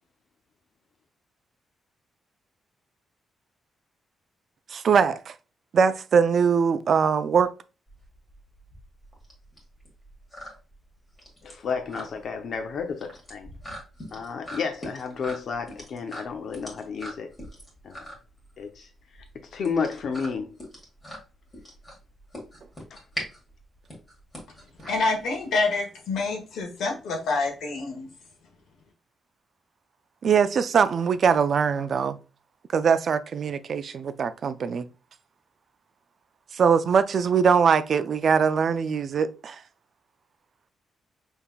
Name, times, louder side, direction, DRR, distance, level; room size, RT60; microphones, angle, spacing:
voice 1, 4.7-5.3 5.7-7.5 30.2-32.2 32.7-34.9 36.5-39.6, right 6 dB, 45° right, 0.3 m, -22 dB
sound 1, 7.9-25.6, equal, 15° left, 1.7 m, -42 dB
voice 2, 11.4-13.5 14.1-17.3 17.8-18.0 18.6-18.9 19.5-20.5, left 5 dB, 55° left, 0.6 m, -31 dB
voice 3, 24.9-28.1, left 3 dB, 80° left, 1.5 m, -27 dB
5.6 x 3.4 x 2.3 m
wide cardioid pair, 165°, 0 cm